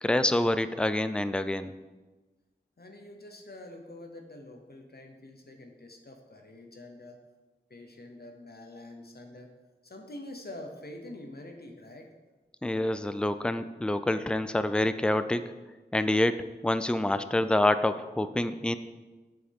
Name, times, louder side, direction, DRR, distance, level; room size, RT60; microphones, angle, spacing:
voice 1, 0.0-1.7 12.6-15.4 15.9-18.8, left 1 dB, 5° left, 11 dB, 0.4 m, -27 dB
voice 2, 2.8-7.2 7.7-9.5 9.8-12.1, left 1 dB, 60° left, 3 dB, 0.8 m, -46 dB
7.3 x 6.3 x 3.6 m, 1.2 s
wide cardioid pair, 40°, 18 cm